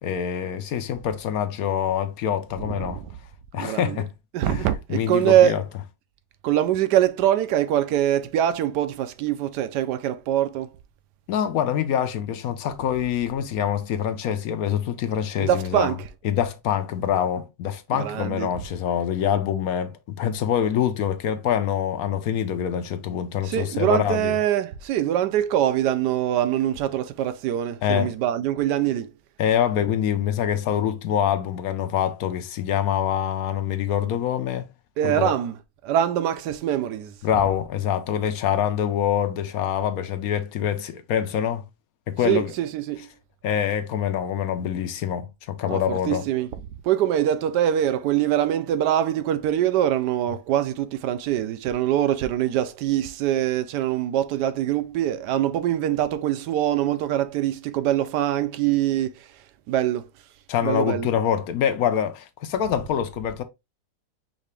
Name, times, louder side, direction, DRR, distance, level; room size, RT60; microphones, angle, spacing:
voice 1, 0.0-3.0 3.5-4.1 4.5-5.6 11.3-15.9 16.2-24.3 27.8-28.1 29.4-34.7 35.0-35.4 37.2-41.6 42.1-42.5 43.4-46.2 60.5-63.4, left 9 dB, 70° left, 0.9 m, -25 dB
voice 2, 2.7-3.1 3.6-4.0 4.3-5.6 6.4-10.7 15.4-16.0 17.9-18.5 23.4-29.1 35.0-35.5 35.8-37.1 42.2-43.1 45.7-46.5 46.8-59.3 59.7-60.1 60.6-61.1, right 11 dB, 85° right, 1.2 m, -23 dB
4.9 x 2.8 x 3.3 m
omnidirectional pair, 1.8 m